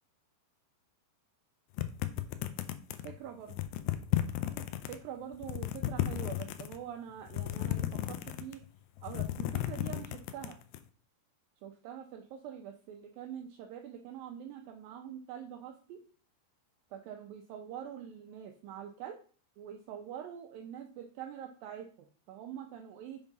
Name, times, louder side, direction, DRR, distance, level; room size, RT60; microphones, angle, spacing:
sound 1, 1.8-3.1 3.5-5.0 5.3-6.8 7.3-8.7 9.0-10.8, left 13 dB, 85° left, 2.1 m, -34 dB
voice 1, 3.0-3.6 4.9-8.6 9.0-10.6 11.6-16.0 16.9-19.2 19.6-23.2, right 9 dB, 90° right, 3 dB, 2.0 m, -45 dB
7.0 x 3.6 x 5.3 m, 0.42 s
omnidirectional pair, 4.8 m